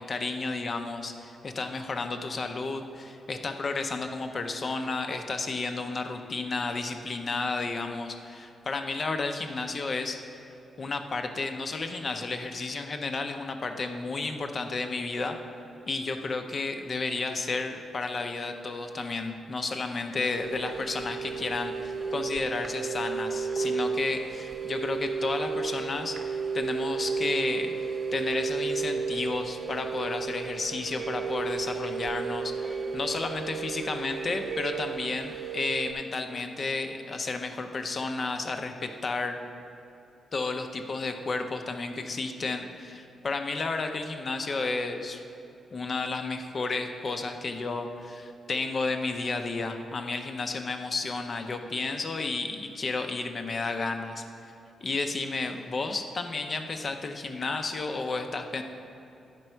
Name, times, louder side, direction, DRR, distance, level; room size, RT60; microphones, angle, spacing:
voice 1, 0.0-10.4 10.8-15.4 15.9-27.7 28.1-39.4 40.3-45.2 45.7-54.2 54.8-58.6, left 3 dB, 35° left, 6 dB, 0.6 m, -32 dB
sound 1, 20.3-35.9, right 5 dB, 40° right, 0.8 m, -33 dB
11.0 x 5.2 x 4.5 m, 2.9 s
wide cardioid pair, 155°, 0 cm